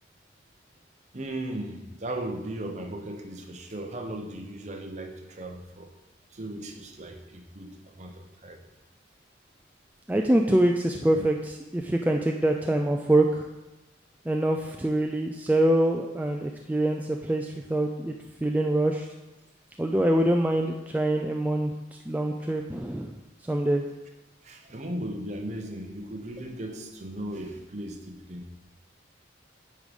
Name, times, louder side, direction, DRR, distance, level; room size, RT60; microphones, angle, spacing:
voice 1, 1.1-5.9 6.3-8.6 22.5-22.6 24.4-28.5, right 1 dB, 40° right, 4 dB, 0.9 m, -37 dB
voice 2, 10.1-13.5 14.3-18.1 18.4-19.1 19.8-21.7 22.1-23.1 23.5-23.8, right 1 dB, 10° right, 2 dB, 0.3 m, -24 dB
9.2 x 4.8 x 5.2 m, 1.1 s
head